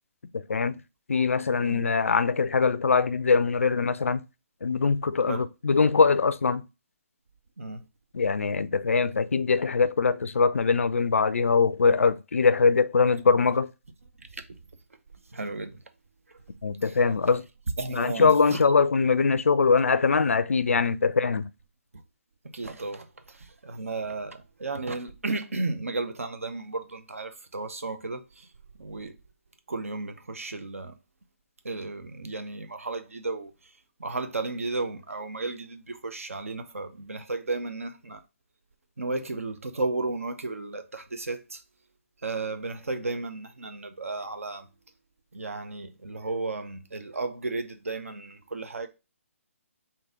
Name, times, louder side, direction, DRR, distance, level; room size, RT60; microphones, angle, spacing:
voice 1, 0.3-0.8 1.1-4.2 4.6-6.6 8.1-13.7 16.6-17.4 17.9-21.5, left 5 dB, 65° left, 0.4 m, -22 dB
voice 2, 14.2-14.6 15.3-15.8 16.3-16.4 16.8-17.0 17.8-18.8 22.5-28.5 28.8-29.2 29.7-31.0 31.6-33.7 34.0-38.2 39.0-41.6 42.2-44.7 45.3-48.9, right 3 dB, 70° right, 0.7 m, -34 dB
3.8 x 2.7 x 3.8 m
figure-of-eight pair, 140°, 8 cm